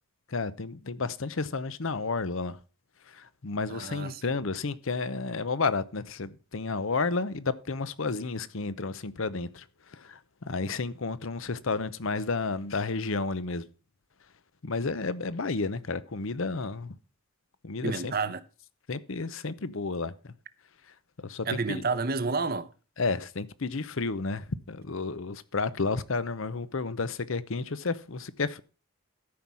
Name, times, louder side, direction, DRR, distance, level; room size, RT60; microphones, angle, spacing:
voice 1, 0.3-2.6 3.1-13.6 14.6-17.0 17.6-18.1 18.9-20.3 20.9-21.0 21.2-21.8 23.0-28.6, left 4 dB, 60° left, 0.8 m, -31 dB
voice 2, 3.7-4.2 17.8-18.4 21.5-22.7, right 4 dB, 45° right, 0.8 m, -30 dB
13.0 x 5.5 x 6.1 m
head